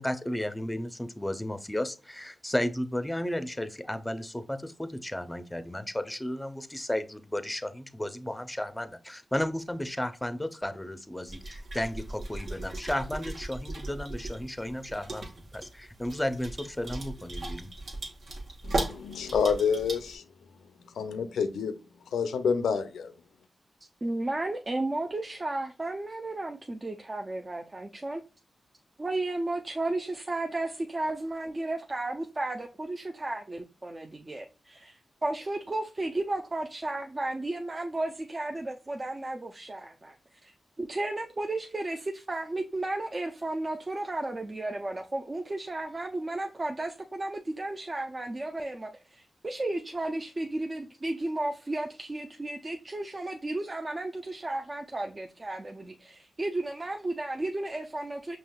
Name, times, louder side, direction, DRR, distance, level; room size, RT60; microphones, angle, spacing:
voice 1, 0.0-17.7, left 1 dB, 10° left, 0.5 m, -33 dB
sound 1, 11.3-20.1, right 2 dB, 65° right, 1.0 m, -37 dB
voice 2, 18.6-20.2 21.0-21.7 22.1-23.1, left 6 dB, 90° left, 0.4 m, -28 dB
voice 3, 24.0-28.2 29.0-58.4, right 2 dB, 35° right, 0.5 m, -33 dB
5.4 x 2.8 x 2.3 m
cardioid pair, 45°, 0 cm